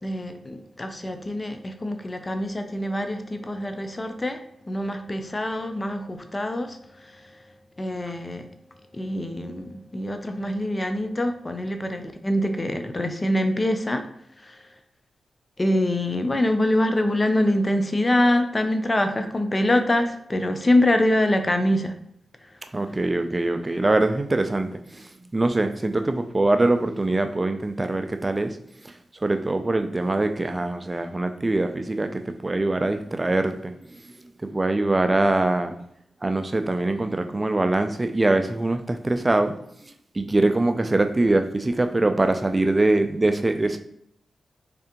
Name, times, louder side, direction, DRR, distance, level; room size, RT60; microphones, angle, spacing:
voice 1, 0.0-7.5 7.8-8.5 8.9-14.1 14.4-14.7 15.6-22.0 22.4-22.6, left 1 dB, 30° left, 7 dB, 0.5 m, -25 dB
voice 2, 22.7-28.6 28.8-34.0 34.5-35.7 36.2-39.5 39.8-43.8, right 2 dB, 30° right, 8 dB, 0.4 m, -23 dB
3.7 x 3.2 x 2.9 m, 0.73 s
cardioid pair, 60°, 0 cm